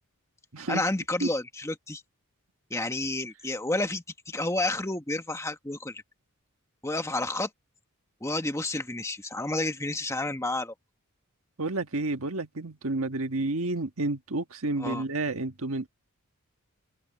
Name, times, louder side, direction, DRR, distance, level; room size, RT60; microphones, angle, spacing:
voice 1, 0.7-2.0 2.7-6.0 6.8-7.5 8.2-10.7 14.8-15.0, left 2 dB, 15° left, 1.4 m, -30 dB
voice 2, 11.6-15.9, right 2 dB, 65° right, 1.6 m, -30 dB
open air
head